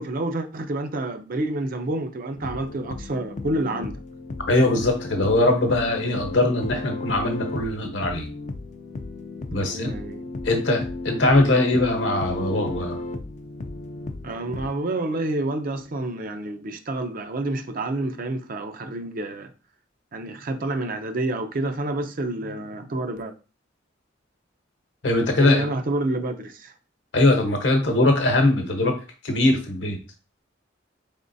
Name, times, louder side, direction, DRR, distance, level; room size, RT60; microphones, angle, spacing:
voice 1, 0.0-4.0 9.5-10.2 14.2-19.5 20.1-23.3 25.4-26.7, right 2 dB, 45° right, 0.5 m, -28 dB
sound 1, 2.3-14.7, left 2 dB, 35° left, 0.4 m, -34 dB
voice 2, 4.5-8.3 9.5-9.9 10.4-12.9 25.0-25.6 27.1-29.0 29.2-30.0, left 2 dB, 65° left, 0.9 m, -21 dB
3.9 x 3.5 x 2.6 m
head